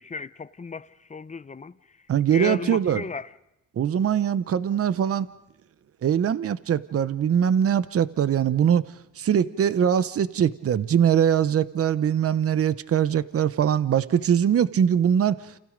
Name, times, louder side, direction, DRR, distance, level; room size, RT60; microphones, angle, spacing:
voice 1, 0.0-1.7 2.3-3.3, left 4 dB, 25° left, 0.8 m, -34 dB
voice 2, 2.1-3.0 3.8-5.3 6.0-8.8 9.2-15.4, right 8 dB, 50° right, 1.0 m, -22 dB
29.5 x 28.5 x 5.2 m
cardioid pair, 90°, 30 cm